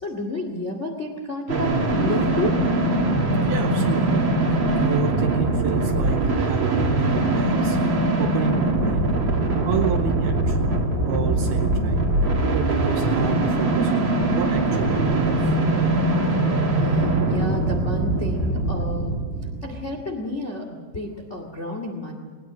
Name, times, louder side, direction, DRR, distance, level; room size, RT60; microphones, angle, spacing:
voice 1, 0.0-2.6 11.6-11.7 16.8-19.2 19.6-22.1, left 2 dB, 80° left, 3 dB, 0.6 m, -31 dB
sound 1, 1.5-20.0, right 2 dB, 35° right, 2.1 m, -22 dB
voice 2, 3.5-4.3 4.8-7.8 8.2-9.1 9.6-10.6 11.1-12.1 12.5-15.6, right 9 dB, 80° right, 7 dB, 2.3 m, -30 dB
20.5 x 19.0 x 7.5 m, 1.5 s
omnidirectional pair, 5.3 m